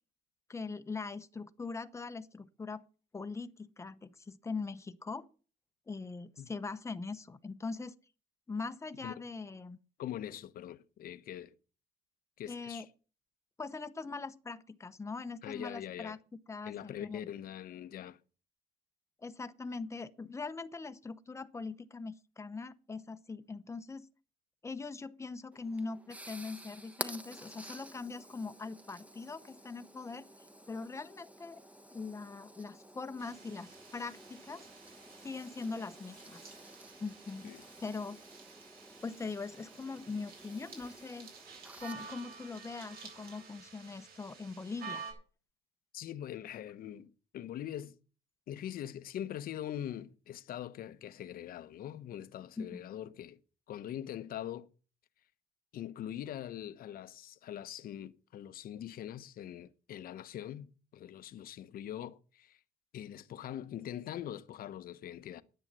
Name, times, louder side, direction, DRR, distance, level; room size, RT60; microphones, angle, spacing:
voice 1, 0.5-2.8 3.1-5.3 5.9-7.9 8.5-9.8 12.5-12.9 13.6-16.2 16.5-17.3 19.2-24.1 24.6-30.3 30.7-31.6 31.9-34.7 35.2-36.4 37.0-37.5 37.8-38.2 39.0-41.3 41.8-45.0 52.6-52.9, left 4 dB, 15° left, 0.9 m, -41 dB
voice 2, 10.0-11.5 12.4-12.8 15.4-16.2 16.6-18.2 37.4-37.6 45.9-48.0 48.5-53.4 53.7-54.7 55.7-62.6 62.9-65.4, left 11 dB, 60° left, 0.9 m, -43 dB
sound 1, 25.5-43.5, right 1 dB, 10° right, 1.2 m, -51 dB
sound 2, 33.2-45.1, right 5 dB, 65° right, 7.9 m, -51 dB
10.0 x 9.4 x 7.5 m
cardioid pair, 110°, 17 cm